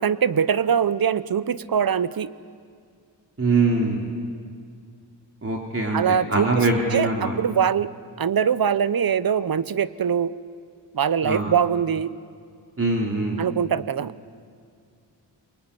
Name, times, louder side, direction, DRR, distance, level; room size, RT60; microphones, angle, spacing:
voice 1, 0.0-2.3 5.9-10.3 10.9-12.1 13.4-14.1, right 7 dB, 50° right, 17 dB, 0.9 m, -23 dB
voice 2, 3.4-4.1 5.4-7.4 11.2-11.5 12.8-13.4, right 3 dB, 30° right, 0 dB, 3.4 m, -23 dB
24.0 x 22.0 x 9.9 m, 2.2 s
cardioid pair, 65°, 45 cm